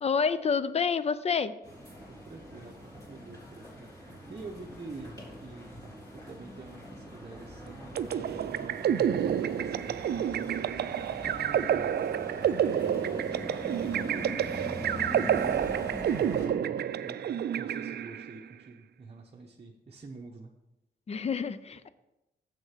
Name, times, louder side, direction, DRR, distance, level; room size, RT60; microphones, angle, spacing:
voice 1, 0.0-1.5 21.1-21.9, left 6 dB, 40° left, 14 dB, 0.5 m, -28 dB
sound 1, 1.6-16.5, equal, 20° left, 3.6 m, -42 dB
voice 2, 2.1-5.7 6.2-10.6 11.2-11.9 12.8-16.8 17.0-20.5, right 3 dB, 35° right, -1 dB, 0.9 m, -47 dB
sound 2, 8.0-18.4, right 9 dB, 70° right, 0.4 m, -29 dB
7.5 x 6.4 x 5.7 m, 0.95 s
wide cardioid pair, 115°, 17 cm